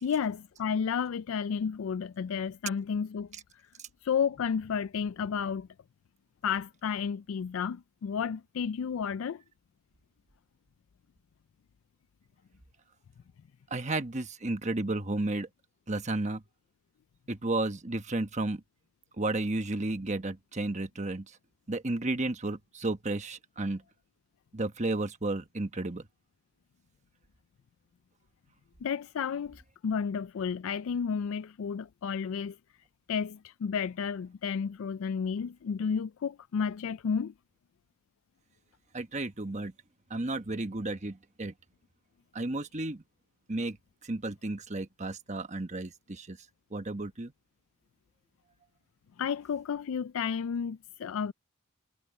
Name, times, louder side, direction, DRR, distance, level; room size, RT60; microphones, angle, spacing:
voice 1, 0.0-3.3 4.0-5.7 6.4-9.4 28.8-32.6 33.1-37.3 49.2-51.3, left 6 dB, 65° left, 0.3 m, -32 dB
voice 2, 13.7-15.5 15.9-16.4 17.3-18.6 19.2-21.3 21.7-23.8 24.5-26.0 38.9-39.7 40.1-41.5 42.3-43.0 43.5-43.8 44.0-46.4 46.7-47.3, right 2 dB, 35° right, 1.2 m, -32 dB
head